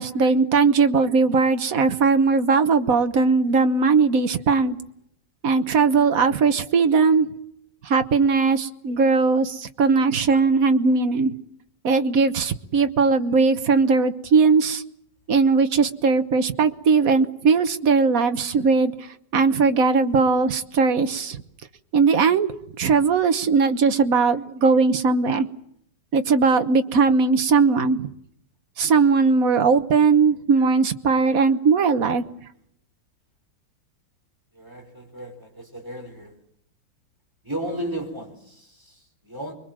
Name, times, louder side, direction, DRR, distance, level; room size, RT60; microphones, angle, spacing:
voice 1, 0.0-4.8 5.4-7.3 7.8-11.3 11.8-14.8 15.3-21.4 21.9-22.5 22.8-25.5 26.1-28.1 28.8-32.2, right 4 dB, 50° right, 9 dB, 1.4 m, -19 dB
voice 2, 34.5-36.4 37.4-39.5, right 1 dB, 10° right, 2 dB, 4.6 m, -34 dB
25.5 x 22.5 x 7.4 m, 0.73 s
omnidirectional pair, 2.1 m